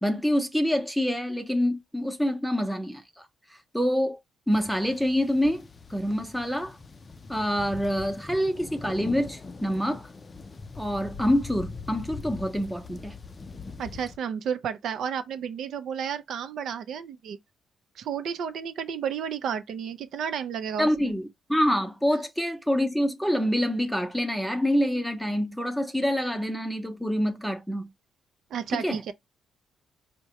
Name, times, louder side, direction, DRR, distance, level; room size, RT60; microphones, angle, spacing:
voice 1, 0.0-3.3 3.7-4.2 4.5-5.6 5.9-6.8 7.3-10.1 10.8-13.2 20.8-27.9 28.7-29.0, equal, ahead, 0.7 m, -26 dB
sound 1, 4.5-14.2, left 4 dB, 30° left, 0.4 m, -42 dB
voice 2, 13.8-17.4 18.0-21.1 28.5-29.1, right 7 dB, 70° right, 0.6 m, -32 dB
4.5 x 2.2 x 2.9 m
cardioid pair, 90°, 0 cm